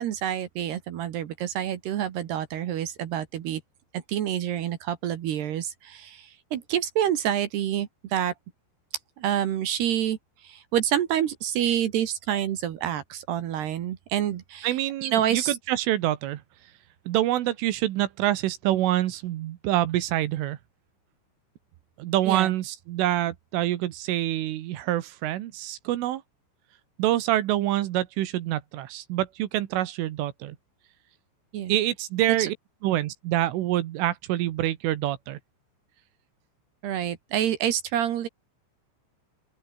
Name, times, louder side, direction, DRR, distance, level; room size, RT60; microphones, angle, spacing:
voice 1, 0.0-3.6 3.9-8.3 9.2-15.6 22.3-22.5 31.5-31.8 32.4-32.5 36.8-38.3, right 10 dB, 65° right, 3.3 m, -28 dB
voice 2, 14.6-16.4 17.1-20.6 22.0-26.2 27.0-30.6 31.7-32.6 32.8-35.4, right 14 dB, 80° right, 3.9 m, -26 dB
open air
omnidirectional pair, 5.7 m